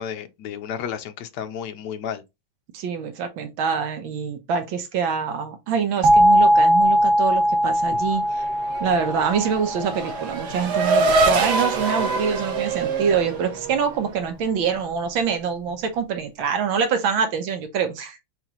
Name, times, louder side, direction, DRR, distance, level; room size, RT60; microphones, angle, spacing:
voice 1, 0.0-2.2, left 8 dB, 70° left, 1.2 m, -32 dB
voice 2, 2.7-8.5 8.8-18.2, right 6 dB, 85° right, 1.7 m, -25 dB
sound 1, 6.0-10.8, equal, 30° right, 0.5 m, -20 dB
Race car auto racing / Accelerating revving vroom, 8.1-14.2, right 3 dB, 60° right, 1.6 m, -25 dB
4.7 x 3.8 x 2.9 m
omnidirectional pair, 2.1 m